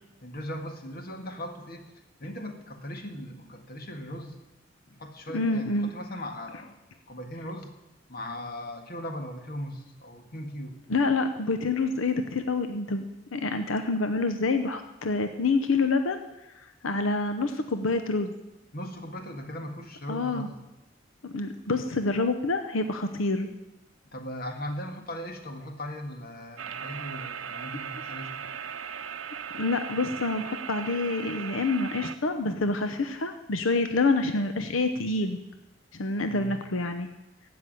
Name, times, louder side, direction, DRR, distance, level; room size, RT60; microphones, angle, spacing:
voice 1, 0.2-1.9 2.2-4.4 4.9-6.8 7.1-7.7 8.1-10.8 18.7-20.6 24.1-28.5 36.2-36.6, equal, 50° left, 5 dB, 1.7 m, -38 dB
voice 2, 5.3-5.9 10.9-13.0 13.3-16.2 16.8-18.3 20.1-20.5 21.2-23.5 29.6-35.4 36.0-37.1, left 3 dB, 90° left, 8 dB, 0.8 m, -27 dB
sound 1, 26.6-32.1, right 7 dB, 90° right, 0.6 m, -38 dB
15.5 x 6.0 x 9.2 m, 0.98 s
head